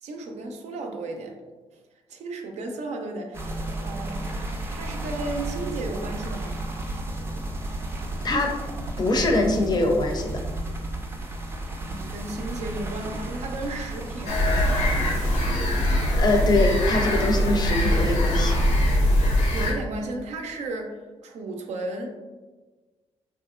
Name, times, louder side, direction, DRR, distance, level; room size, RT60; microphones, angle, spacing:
voice 1, 0.0-1.4 1.7-4.4 4.7-6.6 11.8-14.9 19.5-22.1, right 2 dB, 80° right, 3 dB, 0.4 m, -34 dB
sound 1, 3.3-15.5, right 1 dB, 20° right, 0.4 m, -33 dB
voice 2, 9.0-10.4 15.4-18.6, left 2 dB, 40° left, 3 dB, 0.4 m, -24 dB
sound 2, 14.3-19.7, equal, 90° left, 0.7 m, -22 dB
2.9 x 2.4 x 2.4 m, 1.3 s
cardioid pair, 95°, 11 cm